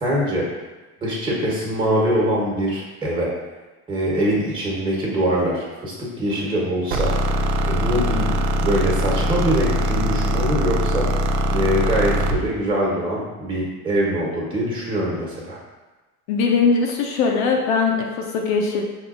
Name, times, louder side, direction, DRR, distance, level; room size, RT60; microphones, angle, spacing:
voice 1, 0.0-0.5 1.0-3.3 3.9-7.3 7.7-8.3 8.6-15.6, equal, 10° right, -4 dB, 1.4 m, -23 dB
sound 1, 6.9-12.5, equal, 60° right, 0.6 m, -21 dB
voice 2, 16.3-18.8, left 4 dB, 55° left, 1 dB, 0.7 m, -20 dB
6.0 x 2.7 x 2.6 m, 1.2 s
hypercardioid pair, 75°, 48 cm